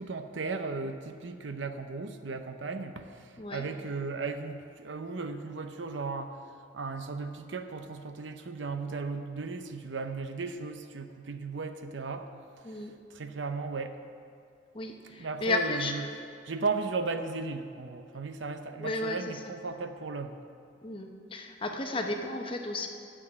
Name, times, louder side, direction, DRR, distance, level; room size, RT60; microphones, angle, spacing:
voice 1, 0.0-14.0 15.0-16.0 16.5-20.4, right 4 dB, 75° right, 8 dB, 0.7 m, -36 dB
voice 2, 14.7-16.1 18.8-19.2 20.8-22.9, left 2 dB, 30° left, 4 dB, 0.9 m, -33 dB
9.7 x 7.7 x 7.6 m, 2.4 s
head